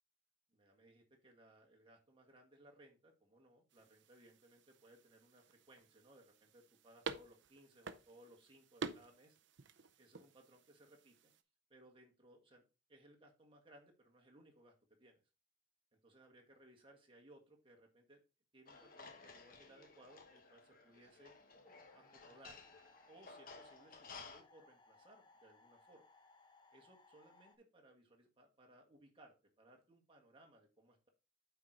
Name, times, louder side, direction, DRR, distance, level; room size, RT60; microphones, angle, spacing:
voice 1, 0.5-9.4 10.0-11.3 11.7-12.6 12.9-14.7 15.0-15.2 16.0-18.2 18.5-21.3 21.9-22.6 23.1-26.0 26.7-31.1, right 1 dB, 25° right, 1 dB, 1.6 m, -64 dB
sound 1, 3.7-11.4, right 4 dB, 65° right, 0.6 m, -51 dB
sound 2, 18.7-24.4, left 4 dB, 45° left, 1.2 m, -56 dB
sound 3, 21.6-27.6, left 3 dB, 25° left, 0.7 m, -66 dB
8.7 x 4.6 x 3.8 m, 0.30 s
head